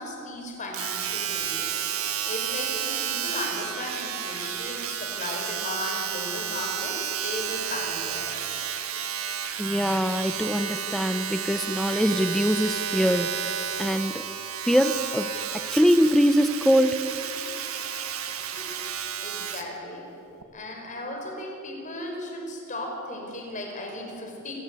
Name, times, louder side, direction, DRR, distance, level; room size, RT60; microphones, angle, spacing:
voice 1, 0.0-8.7 18.6-18.7 19.2-20.1 20.5-24.5, left 1 dB, 35° left, 1 dB, 5.1 m, -36 dB
Domestic sounds home sounds, 0.7-19.7 20.4-20.5, right 8 dB, 90° right, 1.7 m, -31 dB
voice 2, 9.6-13.5 13.8-14.3 14.7-15.3 15.7-17.0, equal, ahead, 10 dB, 0.7 m, -23 dB
26.5 x 17.5 x 8.4 m, 2.9 s
head